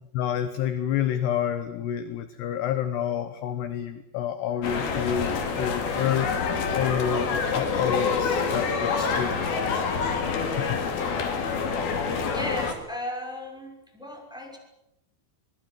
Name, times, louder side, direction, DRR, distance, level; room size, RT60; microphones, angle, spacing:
voice 1, 0.1-10.9, left 9 dB, 70° left, 11 dB, 2.8 m, -29 dB
sound 1, 4.6-12.7, left 5 dB, 50° left, 4.2 m, -27 dB
voice 2, 12.2-14.6, left 1 dB, ahead, 2 dB, 5.8 m, -36 dB
25.0 x 20.0 x 9.5 m, 0.85 s
omnidirectional pair, 5.9 m